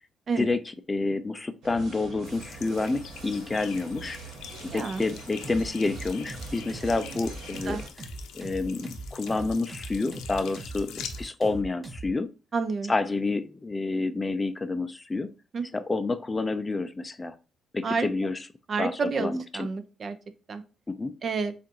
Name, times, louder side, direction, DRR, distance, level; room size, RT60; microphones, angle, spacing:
voice 1, 0.4-4.2 4.7-7.8 8.3-12.3 12.9-15.3 15.7-17.4 17.7-18.5 18.8-19.7 20.9-21.2, left 3 dB, 20° left, 12 dB, 0.5 m, -29 dB
sound 1, 1.6-7.9, right 4 dB, 80° right, 1.4 m, -45 dB
sound 2, 2.2-11.3, left 7 dB, 85° left, 0.7 m, -44 dB
voice 2, 4.7-5.0 7.7-7.8 12.5-12.9 15.5-15.6 17.8-18.1 18.7-20.1 20.5-20.6 21.2-21.5, right 4 dB, 45° right, 10 dB, 0.6 m, -29 dB
sound 3, 5.4-12.1, right 2 dB, 20° right, 1.1 m, -40 dB
7.4 x 2.5 x 2.8 m, 0.33 s
cardioid pair, 90°, 0 cm